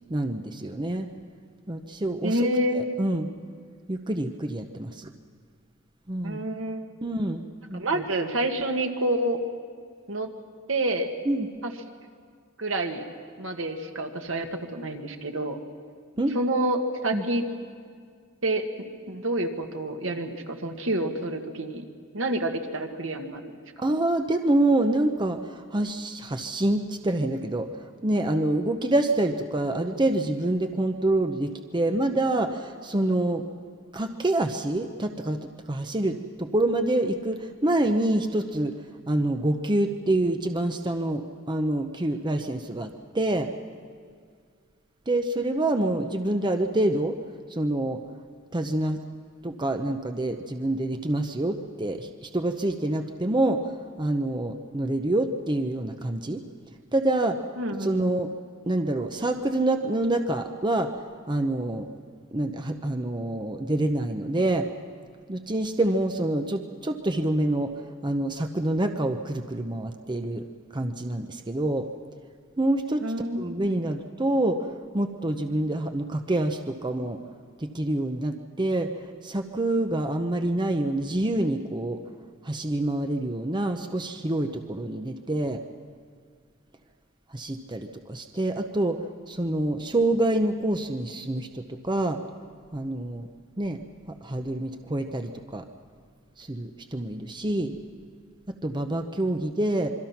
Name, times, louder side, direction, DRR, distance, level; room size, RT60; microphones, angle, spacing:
voice 1, 0.1-1.1 1.7-2.4 2.7-3.3 3.9-5.1 6.1-6.4 7.0-8.0 11.3-11.5 16.2-16.3 17.1-17.2 23.8-27.7 28.0-33.4 33.9-38.7 39.1-42.9 43.1-43.5 45.1-47.2 47.5-48.0 48.5-49.0 49.4-53.6 54.0-56.4 56.9-57.4 57.8-58.3 58.7-60.9 61.3-61.9 62.3-64.7 65.3-67.7 68.0-70.4 70.7-71.9 72.6-73.0 73.4-74.7 74.9-77.2 77.6-78.9 79.2-82.0 82.4-85.6 87.3-89.0 89.3-92.2 92.7-93.3 93.6-93.8 94.2-95.6 96.4-97.8 98.6-99.9, right 1 dB, 20° right, 6 dB, 0.8 m, -26 dB
voice 2, 2.2-2.9 6.2-7.0 7.7-9.4 10.1-10.3 10.7-11.1 11.6-11.7 12.6-13.0 13.4-15.6 16.3-17.4 18.4-18.7 19.1-21.9 22.1-23.6 57.6-58.1 73.0-73.7, right 1 dB, 70° right, 4 dB, 1.8 m, -28 dB
26.5 x 23.0 x 5.9 m, 2.1 s
head